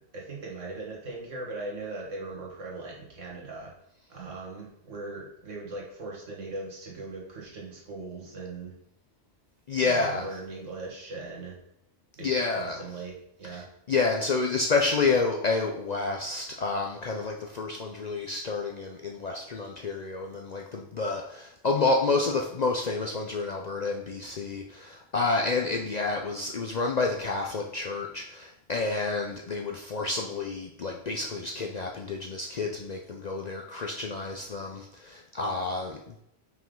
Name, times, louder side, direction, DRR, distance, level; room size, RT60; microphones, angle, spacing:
voice 1, 0.1-3.7 4.1-8.7 9.8-11.6 12.2-13.1 13.4-13.7, right 3 dB, 85° right, -2 dB, 1.8 m, -39 dB
voice 2, 9.7-10.3 12.2-12.8 13.5-13.6 13.9-36.2, left 3 dB, 55° left, 1 dB, 0.5 m, -29 dB
5.5 x 5.0 x 3.7 m, 0.77 s
omnidirectional pair, 1.3 m